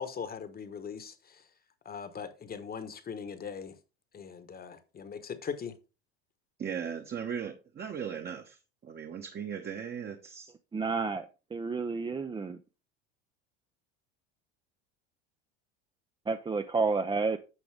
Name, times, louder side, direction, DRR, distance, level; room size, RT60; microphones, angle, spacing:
voice 1, 0.0-1.4 1.8-3.7 4.1-5.8, left 6 dB, 30° left, 1.1 m, -40 dB
voice 2, 6.6-10.5, right 7 dB, 30° right, 1.1 m, -38 dB
voice 3, 10.7-12.6 16.3-17.4, right 4 dB, 15° right, 0.5 m, -30 dB
9.3 x 6.0 x 3.4 m
hypercardioid pair, 95°, 33 cm